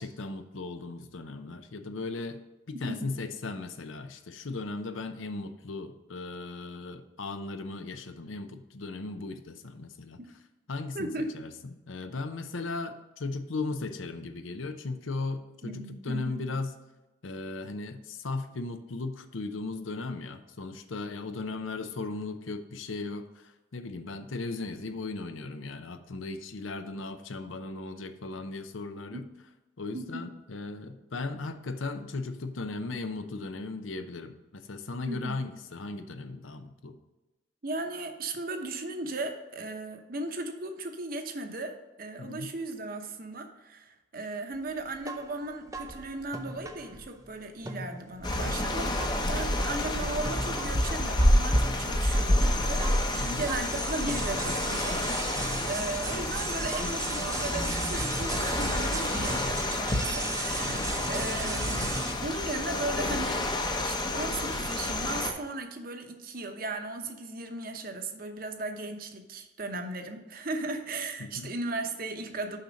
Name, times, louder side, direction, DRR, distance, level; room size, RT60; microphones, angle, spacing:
voice 1, 0.0-2.4 2.7-10.2 10.7-11.5 11.9-16.7 17.2-29.3 29.8-37.0 42.2-42.5 53.2-53.4 60.7-61.1 71.2-71.5, left 3 dB, 90° left, 9 dB, 0.7 m, -37 dB
voice 2, 10.9-11.3 15.6-16.5 29.1-29.2 29.9-30.2 35.1-35.5 37.6-52.8 53.1-63.5 63.8-72.6, right 2 dB, 50° right, 6 dB, 0.9 m, -36 dB
sound 1, 45.0-47.3 47.6-62.1, right 3 dB, 15° right, 0.5 m, -38 dB
sound 2, 48.2-65.3, left 1 dB, 20° left, 0.7 m, -29 dB
6.6 x 5.8 x 5.1 m, 1.1 s
head